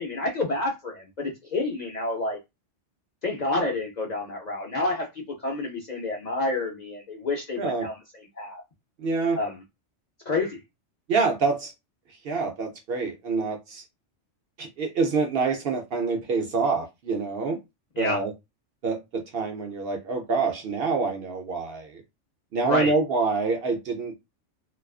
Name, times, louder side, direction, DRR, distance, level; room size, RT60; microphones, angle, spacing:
voice 1, 0.0-2.4 3.2-5.1 5.4-8.0 8.4-8.6 9.3-9.6 10.3-10.6 18.0-18.2 22.6-22.9, left 2 dB, 50° left, 0.5 m, -29 dB
voice 2, 9.0-9.4 11.1-11.7 12.2-13.8 14.6-17.6 18.0-18.3 18.8-21.9 22.5-24.2, right 4 dB, 65° right, 0.7 m, -26 dB
2.4 x 2.2 x 2.3 m
omnidirectional pair, 1.2 m